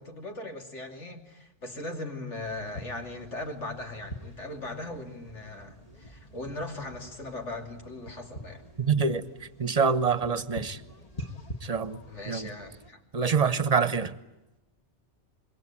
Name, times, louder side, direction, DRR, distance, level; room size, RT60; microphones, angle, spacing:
voice 1, 0.0-8.6 12.1-13.0, left 2 dB, 85° left, 4 dB, 3.3 m, -39 dB
sound 1, 2.4-12.9, left 1 dB, 30° left, 2.0 m, -45 dB
voice 2, 8.8-9.2 9.6-10.8 11.6-12.0 12.3-12.5 13.1-14.1, right 5 dB, 35° right, 14 dB, 1.2 m, -25 dB
26.5 x 22.5 x 8.9 m, 0.99 s
omnidirectional pair, 1.2 m